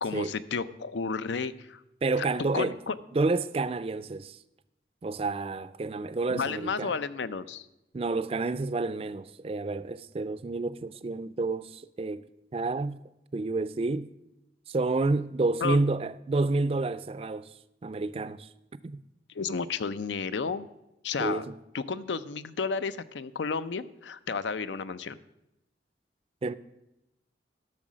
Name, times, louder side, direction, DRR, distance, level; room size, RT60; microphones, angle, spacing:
voice 1, 0.0-1.8 2.5-2.9 6.3-7.7 15.6-15.8 19.3-20.7 21.0-21.5 21.7-25.2, left 5 dB, 85° left, 0.5 m, -32 dB
voice 2, 2.0-2.8 3.1-4.4 5.0-6.9 7.9-12.3 12.5-13.0 13.3-14.1 14.7-17.5 17.8-18.5 18.8-19.0 21.2-21.5 26.4-26.5, right 3 dB, 30° right, 0.4 m, -29 dB
12.5 x 6.4 x 6.2 m
head